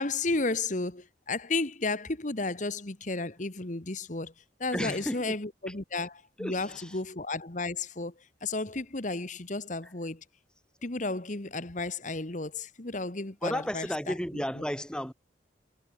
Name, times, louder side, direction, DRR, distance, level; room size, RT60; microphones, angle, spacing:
voice 1, 0.0-4.3 4.6-8.1 8.4-10.2 10.8-14.1, left 3 dB, 45° left, 1.6 m, -33 dB
voice 2, 4.7-5.4 5.7-5.8 6.4-7.0 13.4-15.1, equal, 5° left, 2.9 m, -33 dB
head